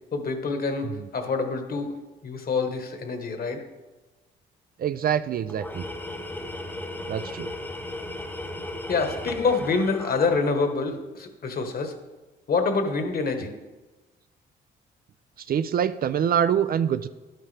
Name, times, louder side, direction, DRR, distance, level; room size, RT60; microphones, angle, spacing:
voice 1, 0.1-1.9 2.2-3.6 8.9-11.9 12.5-13.5, left 4 dB, 50° left, 6 dB, 1.3 m, -26 dB
voice 2, 4.8-5.9 7.1-7.5 15.4-17.1, right 8 dB, 50° right, 13 dB, 0.4 m, -25 dB
Tools, 5.5-10.8, left 1 dB, 10° left, 1.0 m, -36 dB
11.0 x 9.2 x 3.3 m, 1.2 s
cardioid pair, 90°, 20 cm